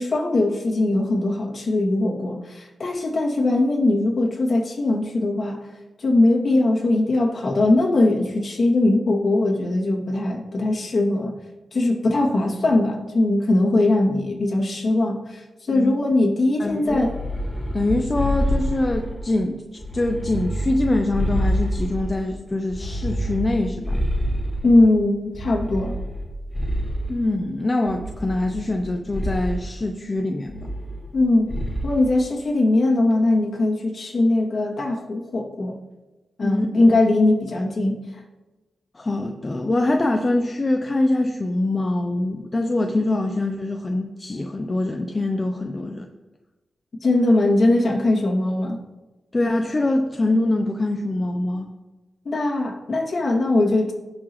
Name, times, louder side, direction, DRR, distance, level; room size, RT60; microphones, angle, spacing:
voice 1, 0.0-5.6 6.0-11.3 11.7-17.1 24.6-26.0 31.1-31.5 31.8-35.8 36.4-38.2 47.0-48.8 52.2-53.9, left 2 dB, 55° left, -2 dB, 2.4 m, -20 dB
voice 2, 16.6-17.0 17.7-19.6 19.9-23.9 27.1-30.7 36.4-36.7 38.9-46.1 49.3-51.7, left 2 dB, 30° left, 4 dB, 0.7 m, -24 dB
sound 1, 16.9-19.3 19.8-22.2 22.7-24.9 25.3-27.2 27.9-28.8 29.1-29.6 30.5-31.2 31.5-32.0, equal, 10° left, 1.8 m, -27 dB
17.0 x 6.2 x 3.1 m, 1.1 s
cardioid pair, 75°, 0 cm